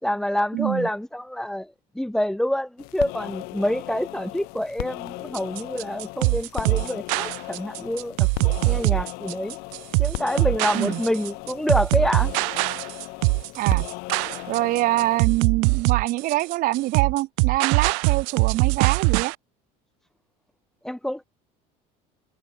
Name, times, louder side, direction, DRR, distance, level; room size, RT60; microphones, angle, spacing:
voice 1, 0.0-9.6 10.0-12.3 20.8-21.3, left 1 dB, 5° left, 3.5 m, -27 dB
voice 2, 0.5-0.9 10.7-11.0 13.6-13.8 14.5-19.3, right 17 dB, 60° right, 1.8 m, -25 dB
sound 1, 2.8-15.2, left 26 dB, 75° left, 4.0 m, -37 dB
sound 2, 5.3-19.3, right 40 dB or more, 85° right, 1.3 m, -22 dB
cardioid pair, 130°, 16 cm